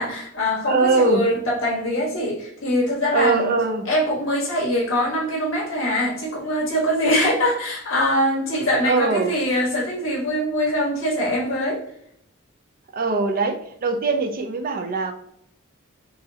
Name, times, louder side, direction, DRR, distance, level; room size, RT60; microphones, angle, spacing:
voice 1, 0.0-3.6 3.9-11.8, equal, 70° left, -4 dB, 1.4 m, -23 dB
voice 2, 0.7-1.3 3.1-3.9 8.8-9.3 12.9-15.1, right 3 dB, 45° right, 5 dB, 0.5 m, -21 dB
4.7 x 3.1 x 2.7 m, 0.69 s
head